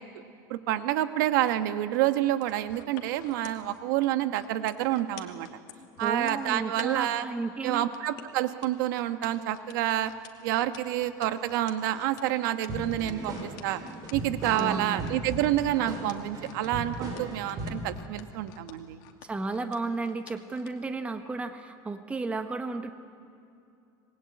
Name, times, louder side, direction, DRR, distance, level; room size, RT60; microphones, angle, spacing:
voice 1, 0.5-5.5 6.0-7.2 7.6-10.1 10.4-13.8 14.1-19.0, right 13 dB, 90° right, 9 dB, 1.3 m, -28 dB
sound 1, 2.3-7.1 7.9-20.7 21.2-21.3, left 14 dB, 80° left, 2.4 m, -49 dB
voice 2, 6.0-7.9 14.5-15.1 19.2-22.9, right 3 dB, 10° right, 7 dB, 1.3 m, -33 dB
sound 2, 12.7-17.9, right 1 dB, 40° right, 6.2 m, -37 dB
26.5 x 21.0 x 8.7 m, 2.6 s
cardioid pair, 155°, 10 cm